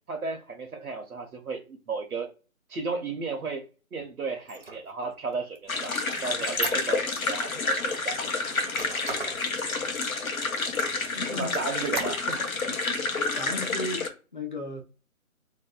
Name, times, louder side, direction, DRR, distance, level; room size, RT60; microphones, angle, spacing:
voice 1, 0.1-2.3 2.7-5.9 6.2-8.1 11.3-12.4, right 4 dB, 85° right, 0.7 m, -34 dB
Squeak, 4.4-7.4 7.8-9.4 9.9-10.0 10.4-11.1 11.5-12.5, right 3 dB, 45° right, 0.4 m, -38 dB
sound 1, 5.7-14.1, left 3 dB, 75° left, 0.7 m, -29 dB
voice 2, 11.1-11.5 12.4-12.8 13.4-14.8, left 2 dB, 35° left, 0.5 m, -36 dB
2.5 x 2.2 x 2.2 m
figure-of-eight pair, 150°, 42 cm